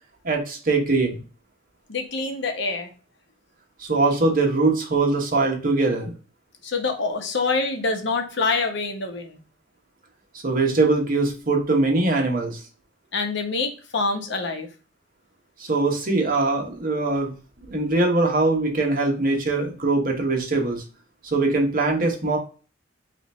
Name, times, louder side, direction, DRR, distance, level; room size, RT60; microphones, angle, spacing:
voice 1, 0.2-1.2 3.8-6.1 10.4-12.6 15.6-17.3 17.7-20.8 21.2-22.4, right 3 dB, 45° right, 1 dB, 1.1 m, -22 dB
voice 2, 1.9-2.9 6.6-9.4 13.1-14.7, left 4 dB, 65° left, 4 dB, 0.9 m, -26 dB
3.4 x 3.0 x 4.1 m, 0.36 s
head